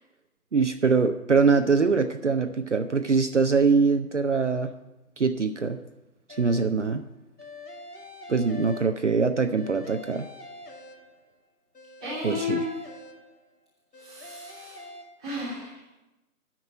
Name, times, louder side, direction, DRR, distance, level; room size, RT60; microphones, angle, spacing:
voice 1, 0.5-4.7 5.2-5.8 6.3-7.0 8.3-10.3 12.2-12.6, right 4 dB, 50° right, 8 dB, 0.5 m, -23 dB
sound 1, 6.3-6.9 7.4-9.2 9.6-11.4 11.7-13.5 13.9-15.0, left 2 dB, 85° left, 2.6 m, -44 dB
voice 2, 12.0-12.7 14.0-14.9 15.2-15.8, left 2 dB, 5° right, -14 dB, 0.9 m, -33 dB
9.7 x 6.0 x 8.6 m, 0.99 s
figure-of-eight pair, 160°, 46 cm